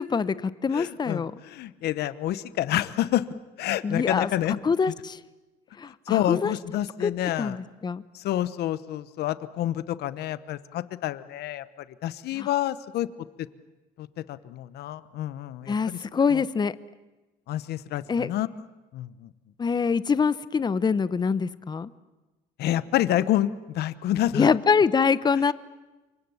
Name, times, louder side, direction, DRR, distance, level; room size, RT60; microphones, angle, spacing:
voice 1, 0.0-1.3 3.8-4.3 4.6-5.2 5.8-6.5 7.0-7.1 7.4-8.0 12.3-12.5 15.7-16.7 18.1-18.3 19.6-21.9 24.3-25.5, left 5 dB, 25° left, 16 dB, 0.8 m, -24 dB
voice 2, 0.7-3.3 3.6-4.5 6.1-7.6 8.1-11.6 12.0-13.1 14.0-16.0 16.3-16.4 17.5-18.5 18.9-19.3 22.6-23.5 23.7-24.5 25.5-25.6, left 13 dB, 70° left, 15 dB, 1.0 m, -28 dB
27.5 x 24.5 x 7.1 m, 1.1 s
cardioid pair, 110°, 17 cm